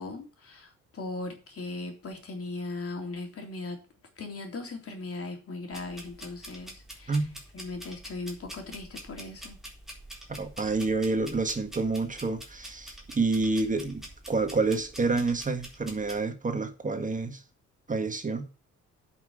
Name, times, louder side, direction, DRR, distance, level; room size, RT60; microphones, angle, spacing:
voice 1, 0.0-3.8 4.2-7.2 7.5-9.6, left 2 dB, 50° left, 3.5 m, -38 dB
sound 1, 5.7-16.2, right 1 dB, ahead, 3.7 m, -46 dB
voice 2, 10.4-17.4 17.9-18.5, right 3 dB, 25° right, 1.6 m, -28 dB
9.2 x 6.0 x 6.6 m
cardioid pair, 90°, 30 cm